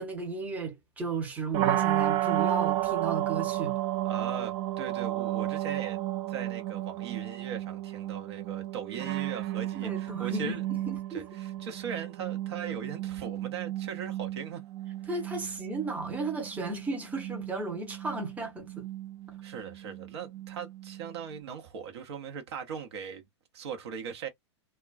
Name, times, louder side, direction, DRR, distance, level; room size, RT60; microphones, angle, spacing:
voice 1, 0.0-3.8 9.8-10.6 10.9-11.3 15.1-18.9, right 3 dB, 10° right, 0.8 m, -34 dB
sound 1, 1.5-21.4, right 14 dB, 30° right, 0.4 m, -33 dB
voice 2, 4.0-6.0 6.3-10.7 11.1-14.6 19.4-23.3 23.5-24.3, right 7 dB, 60° right, 0.9 m, -39 dB
2.3 x 2.2 x 2.4 m
figure-of-eight pair, 105°, 15 cm